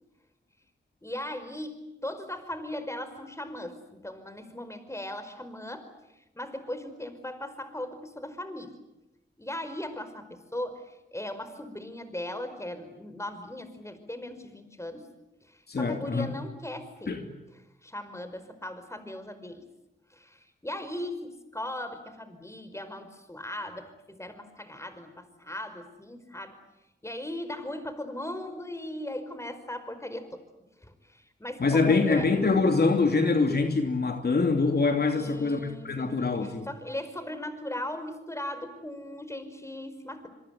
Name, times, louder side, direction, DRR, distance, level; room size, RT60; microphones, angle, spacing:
voice 1, 1.0-8.8 9.4-15.1 15.4-17.1 17.8-19.7 20.1-26.6 27.0-30.4 30.8-32.3 35.1-40.3, left 1 dB, 15° left, 10 dB, 5.2 m, -38 dB
voice 2, 15.7-16.3 17.1-17.2 31.6-36.7, left 4 dB, 60° left, 5 dB, 2.9 m, -24 dB
26.5 x 23.5 x 9.6 m, 0.94 s
cardioid pair, 55°, 19 cm